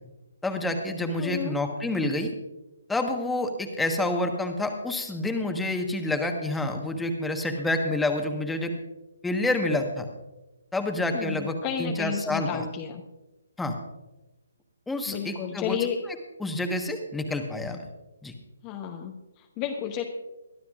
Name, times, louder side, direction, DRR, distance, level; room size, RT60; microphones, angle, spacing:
voice 1, 0.4-2.3 2.9-8.7 9.2-10.1 10.7-12.7 13.6-13.8 14.9-15.8 16.4-17.8 18.2-18.3, left 2 dB, 5° left, 4 dB, 1.3 m, -28 dB
voice 2, 1.2-1.6 11.1-13.0 15.1-16.0 18.6-20.0, left 8 dB, 25° left, 3 dB, 0.9 m, -32 dB
22.5 x 12.0 x 2.5 m, 1.0 s
figure-of-eight pair, 140°, 0 cm